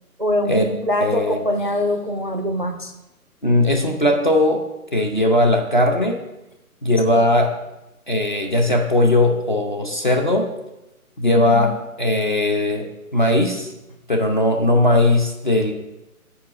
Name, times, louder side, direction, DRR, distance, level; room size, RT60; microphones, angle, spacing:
voice 1, 0.2-2.9 11.2-11.7, equal, 35° right, 7 dB, 0.4 m, -23 dB
voice 2, 1.0-1.4 3.4-4.6 4.9-6.2 6.8-7.6 8.1-10.5 11.2-11.7 12.0-12.9 13.1-13.7 14.1-15.7, left 1 dB, 35° left, 3 dB, 0.6 m, -18 dB
7.1 x 4.8 x 6.1 m, 0.94 s
hypercardioid pair, 170°, 44 cm